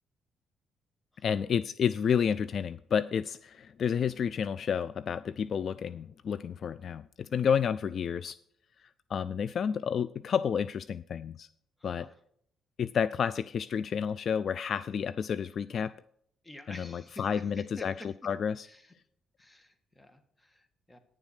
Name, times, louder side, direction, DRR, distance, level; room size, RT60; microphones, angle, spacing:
voice 1, 1.2-8.4 9.1-11.5 11.8-12.1 12.8-15.9 16.7-17.9 18.2-18.7, left 7 dB, 55° left, 17 dB, 0.3 m, -30 dB
voice 2, 11.8-12.1 16.4-18.1 18.6-18.9 19.4-21.0, left 1 dB, 15° left, 9 dB, 1.6 m, -50 dB
9.9 x 7.1 x 6.5 m, 0.66 s
cardioid pair, 90°, 0 cm